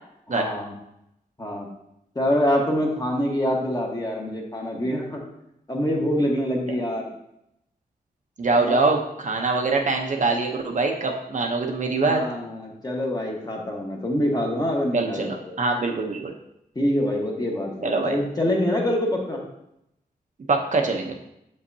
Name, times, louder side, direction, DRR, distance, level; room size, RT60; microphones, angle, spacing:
voice 1, 0.3-0.7 1.4-1.7 2.1-5.2 5.7-7.0 8.6-8.8 11.9-15.5 16.7-19.4, left 1 dB, 25° left, -1 dB, 1.4 m, -25 dB
voice 2, 8.4-12.2 14.9-16.3 17.8-18.2 20.5-21.2, right 3 dB, 50° right, 2 dB, 0.8 m, -23 dB
6.4 x 5.3 x 2.8 m, 0.81 s
cardioid pair, 80°, 16 cm